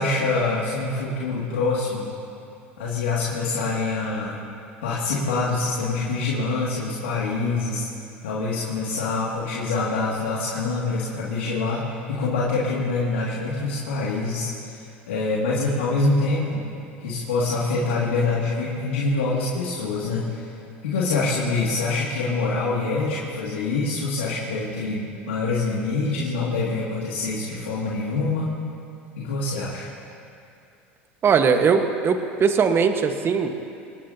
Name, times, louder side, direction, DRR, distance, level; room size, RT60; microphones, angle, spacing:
voice 1, 0.0-2.1 2.8-4.4 4.8-7.9 8.2-16.6 17.0-20.6 20.8-28.5 29.2-29.9, left 3 dB, 85° left, -6 dB, 2.4 m, -25 dB
voice 2, 31.2-33.6, right 6 dB, 35° right, 6 dB, 1.4 m, -20 dB
25.0 x 19.0 x 2.9 m, 2.7 s
hypercardioid pair, 85°, 7 cm